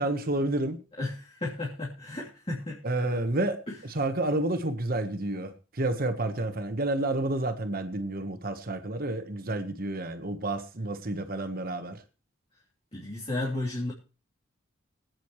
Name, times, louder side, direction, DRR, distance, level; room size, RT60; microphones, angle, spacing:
voice 1, 0.0-0.8 2.8-12.0, right 2 dB, 45° right, 9 dB, 1.3 m, -30 dB
voice 2, 1.0-2.8 3.7-3.8 12.9-13.9, left 2 dB, 30° left, -6 dB, 3.3 m, -33 dB
24.5 x 9.2 x 3.2 m, 0.34 s
head